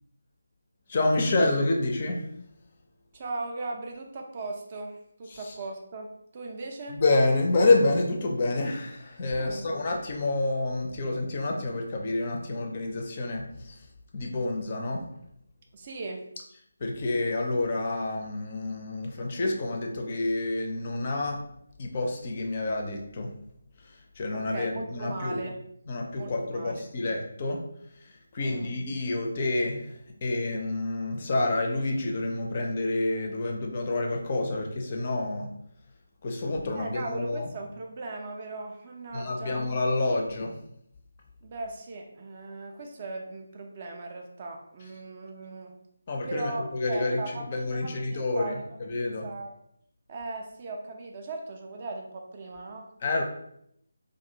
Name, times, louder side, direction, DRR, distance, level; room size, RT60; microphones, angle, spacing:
voice 1, 0.9-2.2 5.3-5.4 6.9-13.9 14.1-15.0 16.8-21.4 21.8-23.3 23.8-25.4 25.9-27.6 27.9-35.5 36.2-37.5 39.1-40.5 46.1-47.2 47.5-49.3 53.0-53.2, left 2 dB, 35° left, 1 dB, 0.4 m, -28 dB
voice 2, 3.1-7.0 9.3-9.7 15.7-16.3 24.3-25.6 26.2-26.8 28.4-28.8 36.7-39.6 41.4-45.8 46.3-48.8 49.2-49.6 50.1-52.9, right 2 dB, 30° right, 1 dB, 0.3 m, -38 dB
2.4 x 2.1 x 2.6 m, 0.73 s
figure-of-eight pair, 155°, 0 cm